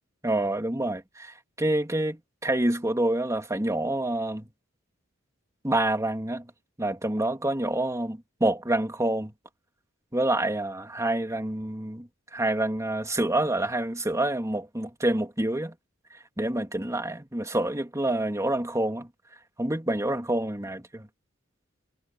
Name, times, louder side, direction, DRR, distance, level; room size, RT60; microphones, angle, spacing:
voice 1, 0.2-4.5 5.6-6.5 6.8-9.3 10.1-15.7 16.4-19.1 19.6-21.1, right 1 dB, 15° right, 2.6 m, -27 dB
head